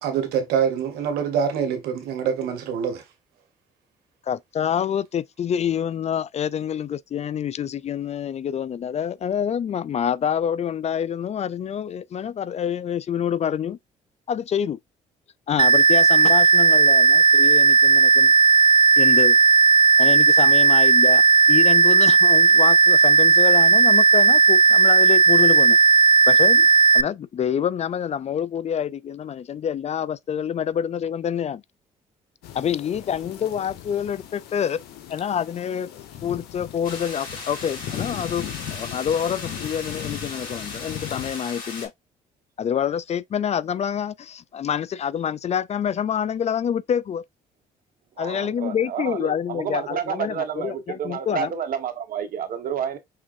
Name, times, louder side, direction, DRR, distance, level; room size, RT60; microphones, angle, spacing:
voice 1, 0.0-3.0, right 7 dB, 80° right, 1.3 m, -25 dB
voice 2, 4.3-13.8 14.3-14.8 15.5-18.3 19.0-19.4 20.0-21.2 21.5-25.8 26.3-26.7 26.9-31.6 32.5-34.8 35.1-35.9 36.2-41.9 42.6-47.2 48.2-51.5, left 8 dB, 45° left, 0.4 m, -27 dB
sound 1, 15.6-27.0, right 5 dB, 30° right, 0.4 m, -15 dB
sound 2, 32.4-41.4, left 11 dB, 80° left, 1.0 m, -38 dB
sound 3, 36.8-41.9, left 4 dB, 60° left, 3.7 m, -37 dB
voice 3, 48.2-53.0, right 8 dB, 65° right, 1.3 m, -30 dB
5.6 x 3.5 x 2.5 m
supercardioid pair, 60°, 16 cm